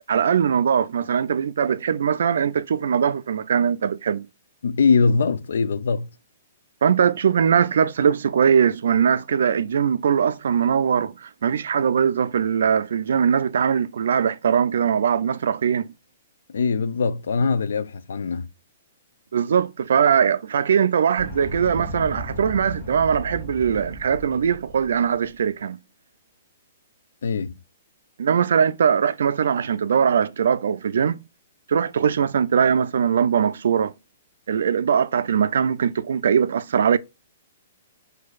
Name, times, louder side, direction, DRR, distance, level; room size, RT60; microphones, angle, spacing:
voice 1, 0.1-4.3 6.8-15.9 19.3-25.8 28.2-31.2 31.7-33.9 34.5-37.0, right 7 dB, 70° right, 0.3 m, -21 dB
voice 2, 4.6-6.1 16.5-18.5 27.2-27.6, left 4 dB, 85° left, 0.4 m, -22 dB
sound 1, 21.2-25.1, equal, 30° left, 1.7 m, -35 dB
6.2 x 2.6 x 2.3 m
hypercardioid pair, 170°, 0 cm